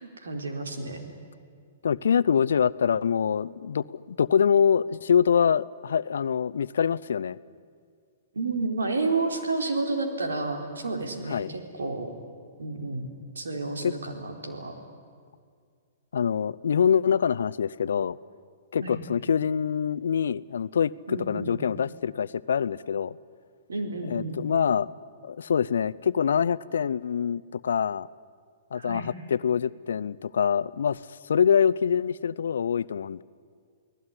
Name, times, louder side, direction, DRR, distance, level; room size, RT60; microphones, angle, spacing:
voice 1, 0.0-1.1 8.3-12.1 12.6-13.1 13.4-14.8 18.8-19.0 21.1-21.6 23.7-24.4 28.7-29.1, right 3 dB, 85° right, 4 dB, 4.0 m, -31 dB
voice 2, 1.8-7.4 11.3-11.5 13.8-13.9 16.1-18.2 18.7-23.2 24.0-24.9 25.2-28.1 28.7-33.2, left 7 dB, 75° left, 17 dB, 0.6 m, -25 dB
29.5 x 19.0 x 9.9 m, 2.1 s
hypercardioid pair, 120°, 0 cm